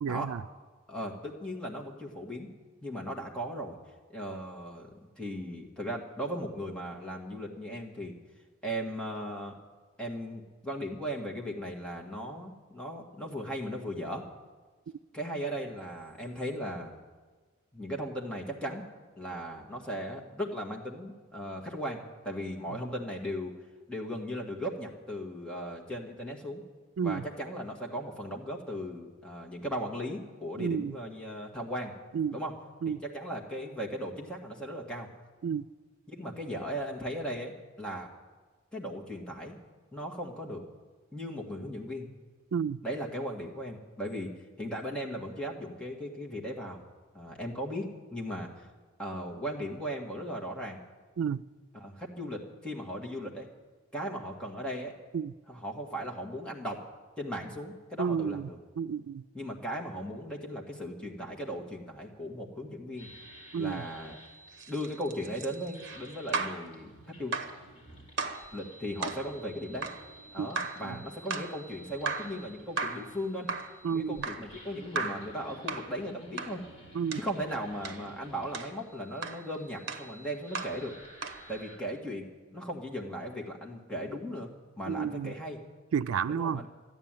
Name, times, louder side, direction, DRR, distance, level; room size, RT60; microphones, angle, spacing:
voice 1, 0.0-0.4 27.0-27.2 30.6-31.0 32.1-32.4 32.8-33.0 35.4-35.7 42.5-42.8 51.2-51.4 55.1-55.3 58.0-58.5 58.8-59.2 63.5-63.8 70.4-70.5 70.8-71.0 73.8-74.3 76.9-77.2 84.9-85.3 85.9-86.6, right 7 dB, 90° right, 0.4 m, -31 dB
voice 2, 0.9-2.5 2.8-3.8 4.1-8.1 8.6-9.5 10.0-14.2 15.1-16.9 17.7-18.9 19.2-23.5 23.9-26.6 27.0-31.9 32.3-32.5 32.9-35.1 36.1-37.5 37.8-38.1 38.7-39.6 39.9-40.6 41.1-42.1 42.8-44.3 44.6-46.8 47.1-48.7 49.0-50.8 51.7-53.5 53.9-54.9 55.5-56.8 57.2-58.6 59.3-63.1 63.5-64.2 64.7-67.3 68.5-69.9 70.3-73.5 73.9-76.6 77.1-80.9 81.5-85.6 86.3-86.7, equal, 5° left, 1.7 m, -37 dB
sound 1, 63.0-81.8, right 1 dB, 30° left, 4.7 m, -53 dB
sound 2, 64.5-66.7 67.3-67.6 68.2-68.5 69.0-69.3 69.8-70.0 70.6-70.9 71.3-71.6 72.1-72.4 72.8-73.1 73.5-73.8 74.2-74.5 75.0-75.3 75.7-75.9 76.4-76.6 77.1-77.3 77.8-78.0 78.5-78.8 79.2-79.4 79.9-80.1 80.5-80.8 81.2-81.4, right 4 dB, 55° right, 1.1 m, -35 dB
13.0 x 10.5 x 9.0 m
head